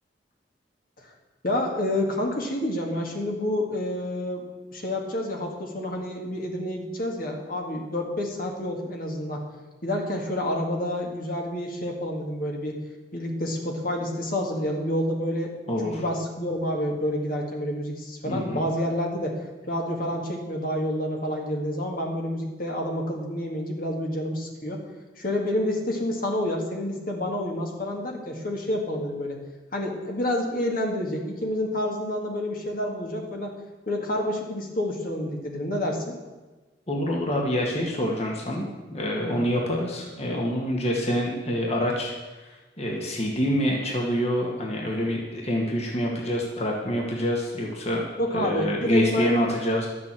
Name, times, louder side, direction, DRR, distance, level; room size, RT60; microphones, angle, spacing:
voice 1, 1.4-4.4 4.7-9.4 9.8-12.8 13.1-15.5 15.8-19.4 19.7-24.8 25.2-29.4 29.7-33.5 33.9-36.2 39.2-39.4 48.2-49.3, left 1 dB, 50° left, 1 dB, 2.0 m, -28 dB
voice 2, 15.7-16.0 18.2-18.6 36.9-48.0 48.3-49.9, equal, 35° left, -1 dB, 1.8 m, -26 dB
12.0 x 7.5 x 7.5 m, 1.2 s
head